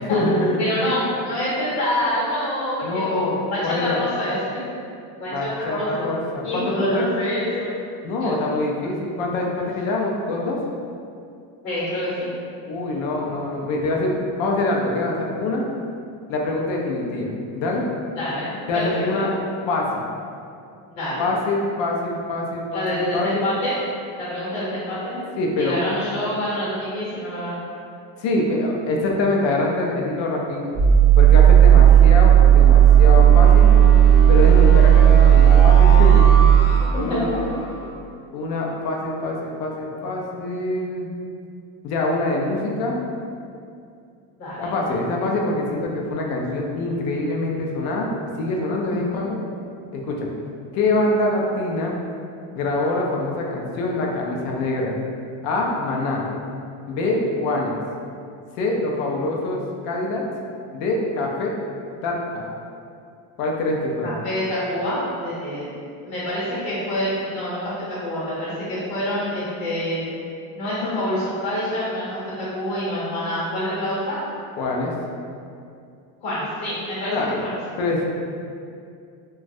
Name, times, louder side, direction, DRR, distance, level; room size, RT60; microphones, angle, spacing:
voice 1, 0.0-0.6 2.8-4.0 5.3-7.1 8.0-10.6 12.7-15.6 16.3-17.9 18.7-19.3 19.7-20.0 21.2-23.4 25.4-25.8 28.2-30.6 31.2-33.7 34.3-36.2 37.0-37.4 37.8-37.9 38.3-41.1 41.8-43.0 44.6-48.1 48.4-49.4 49.9-50.3 50.7-52.0 52.6-54.9 55.4-56.2 56.9-57.7 58.6-60.2 60.7-61.5 62.0-62.5 63.4-64.1 74.6-74.9 77.1-77.4 77.8-78.0, left 2 dB, 65° left, -1 dB, 0.5 m, -24 dB
voice 2, 0.6-3.2 3.5-4.4 5.2-6.1 6.4-7.7 8.2-8.3 11.6-12.3 18.1-18.8 20.9-21.3 22.7-23.7 24.2-25.2 25.6-27.5 31.9-32.0 36.8-37.4 44.4-44.7 49.0-49.2 64.0-65.7 66.0-70.1 70.5-74.2 76.2-77.1 77.4-77.5, left 1 dB, 40° left, -9 dB, 1.0 m, -26 dB
sound 1, 30.8-37.7, right 9 dB, 5° left, 0.4 m, -12 dB
3.0 x 2.3 x 2.6 m, 2.4 s
cardioid pair, 175°, 42 cm